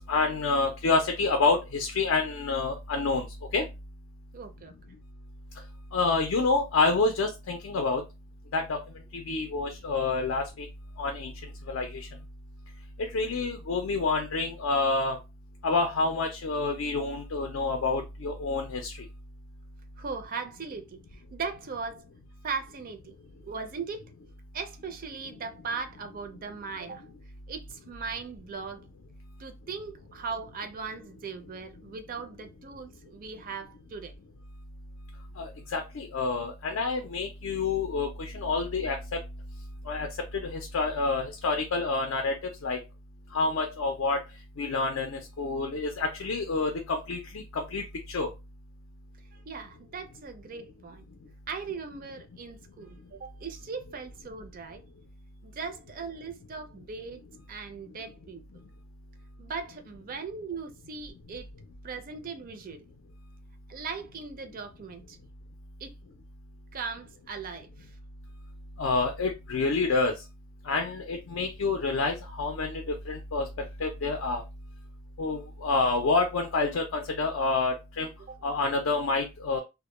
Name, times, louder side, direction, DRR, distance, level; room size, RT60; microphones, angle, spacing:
voice 1, 0.1-3.3 3.5-3.6 5.9-8.0 8.5-8.8 9.1-10.7 11.0-11.3 11.7-12.1 13.1-15.2 15.6-18.9 35.4-39.0 39.9-40.1 40.4-42.3 42.6-42.8 43.3-44.2 44.6-48.3 68.8-70.1 70.7-73.4 73.8-74.4 75.2-78.1 78.4-79.6, left 3 dB, 70° left, 0.4 m, -28 dB
voice 2, 4.3-4.7 20.0-22.1 22.4-23.1 23.4-24.0 24.5-27.1 27.5-28.9 29.4-34.1 49.5-51.0 51.5-54.8 55.4-57.2 57.5-58.4 59.4-61.5 61.8-62.9 63.7-65.2 65.8-65.9 66.7-67.9 78.3-78.4, right 5 dB, 45° right, 0.4 m, -38 dB
2.1 x 2.1 x 3.0 m
head